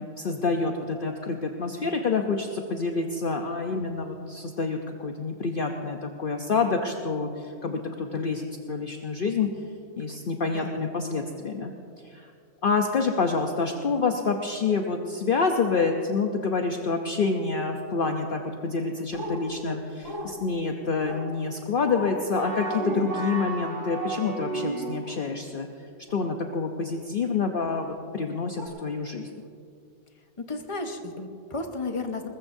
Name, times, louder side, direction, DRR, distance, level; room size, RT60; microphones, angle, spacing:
voice 1, 0.2-9.5 10.0-11.7 12.0-12.3 12.6-25.7 26.1-29.3, left 4 dB, 50° left, 3 dB, 0.9 m, -27 dB
voice 2, 10.5-10.9 30.4-32.3, left 3 dB, 25° left, 4 dB, 1.2 m, -33 dB
sound 1, 19.1-19.4 20.0-20.3 21.0-21.3 21.8-22.2 22.8-23.0 25.0-25.2 26.1-26.3 27.6-27.8 28.6-28.7, left 1 dB, 20° right, 3.2 m, -37 dB
sound 2, 22.3-25.2, right 3 dB, 40° right, 1.6 m, -32 dB
21.5 x 20.5 x 2.7 m, 2.4 s
omnidirectional pair, 1.3 m